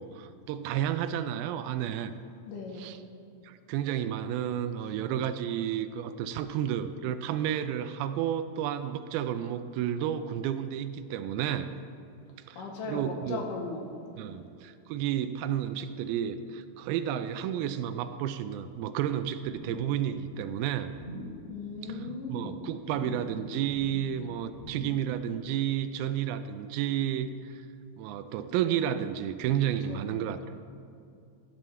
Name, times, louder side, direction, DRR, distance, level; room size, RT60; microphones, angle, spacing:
voice 1, 0.0-2.1 2.8-3.0 3.4-11.7 12.5-13.4 14.2-20.9 21.8-27.6 28.0-30.5, right 10 dB, 85° right, 11 dB, 2.4 m, -31 dB
voice 2, 2.5-2.9 12.6-13.9 14.1-14.4 21.5-22.7 29.9-30.1, left 3 dB, 70° left, 1 dB, 2.4 m, -38 dB
sound 1, 19.4-19.9 20.2-20.5 20.9-21.4 21.8-22.2 22.8-23.4 23.6-24.1 24.5-25.1 25.4-25.5, equal, 25° left, 2.7 m, -43 dB
12.5 x 12.0 x 3.3 m, 2.6 s
omnidirectional pair, 4.4 m